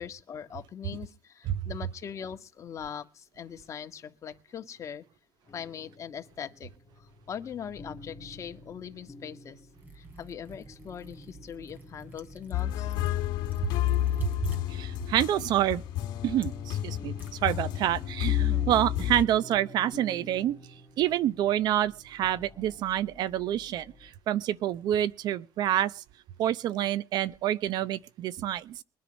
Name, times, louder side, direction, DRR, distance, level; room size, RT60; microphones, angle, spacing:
voice 1, 0.0-5.0 5.5-6.7 7.0-9.6 9.9-12.9 18.4-18.8, left 8 dB, 45° left, 1.7 m, -41 dB
sound 1, 5.5-24.1, left 1 dB, 30° left, 2.3 m, -49 dB
Liquid, 9.7-18.0, right 2 dB, 25° right, 4.5 m, -52 dB
sound 2, 12.5-19.3, left 13 dB, 80° left, 1.3 m, -30 dB
voice 2, 14.2-15.8 16.2-20.6 21.0-26.0 26.4-28.8, right 12 dB, 70° right, 0.9 m, -28 dB
21.5 x 10.5 x 5.3 m
cardioid pair, 105°, 7 cm